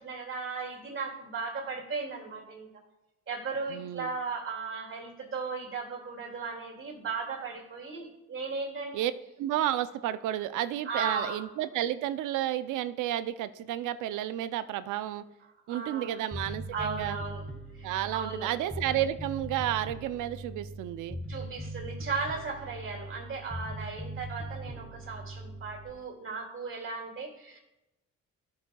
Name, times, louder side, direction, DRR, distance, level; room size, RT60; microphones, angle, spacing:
voice 1, 0.0-2.7 3.3-9.0 10.9-11.4 15.7-16.3 16.7-17.4 17.7-18.5 21.3-27.6, right 4 dB, 45° right, 0 dB, 2.3 m, -36 dB
voice 2, 3.7-4.1 8.9-9.1 9.4-15.2 15.7-17.2 17.8-21.2, right 12 dB, 85° right, 13 dB, 0.5 m, -31 dB
Bass guitar, 16.3-25.9, right 1 dB, ahead, 1.5 m, -40 dB
12.5 x 6.2 x 2.3 m, 0.97 s
cardioid pair, 90°, 30 cm